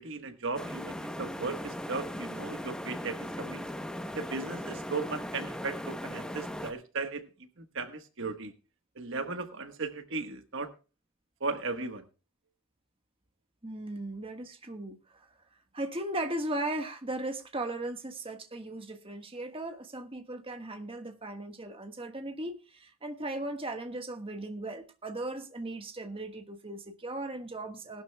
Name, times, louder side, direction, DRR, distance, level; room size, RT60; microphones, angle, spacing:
voice 1, 0.0-3.6 4.1-7.3 7.6-8.5 9.0-10.7 11.4-12.1, right 3 dB, 55° right, 1.3 m, -36 dB
sound 1, 0.5-6.7, equal, 5° left, 0.8 m, -38 dB
voice 2, 13.6-15.3 15.7-28.0, right 1 dB, 25° right, 1.4 m, -37 dB
19.5 x 12.0 x 2.2 m
head